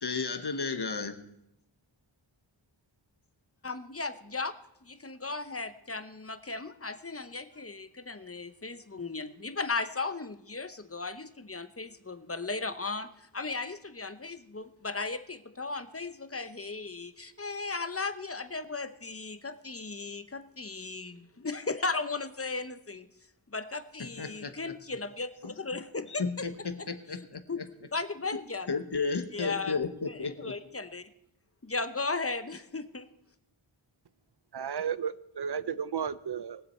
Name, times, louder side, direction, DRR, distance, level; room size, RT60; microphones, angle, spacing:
voice 1, 0.0-1.2 24.0-24.5 26.1-27.4 28.3-28.4 28.7-30.6, left 4 dB, 55° left, 1.2 m, -33 dB
voice 2, 3.6-4.6 4.8-23.1 23.5-26.2 27.5-27.6 27.9-28.7 29.3-31.1 31.6-33.1, left 3 dB, 30° left, 0.8 m, -36 dB
voice 3, 34.5-36.6, right 7 dB, 55° right, 0.6 m, -33 dB
21.0 x 7.5 x 4.4 m
wide cardioid pair, 45°, 48 cm